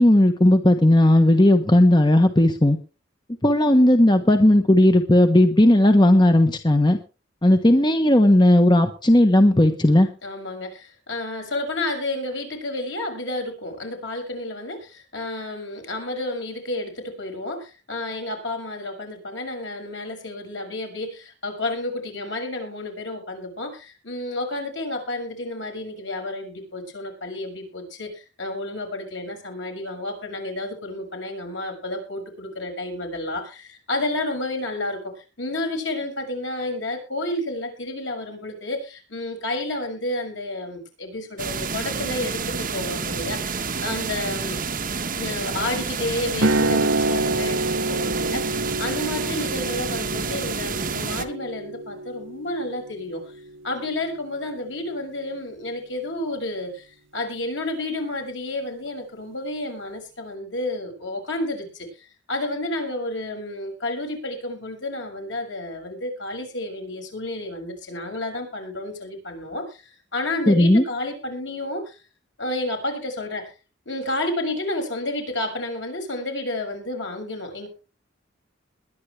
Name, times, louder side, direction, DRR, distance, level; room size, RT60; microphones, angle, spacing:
voice 1, 0.0-2.8 3.4-7.0 7.4-10.1 70.5-70.8, left 1 dB, 25° left, 7 dB, 1.2 m, -16 dB
voice 2, 10.2-44.6 45.1-53.2 53.6-72.0 72.4-73.5 73.8-77.7, left 2 dB, 70° left, 3 dB, 6.6 m, -31 dB
sound 1, 41.4-51.3, right 5 dB, 45° right, 1.4 m, -29 dB
sound 2, 46.4-54.4, right 2 dB, 90° right, 1.0 m, -27 dB
22.0 x 10.5 x 3.4 m, 0.33 s
head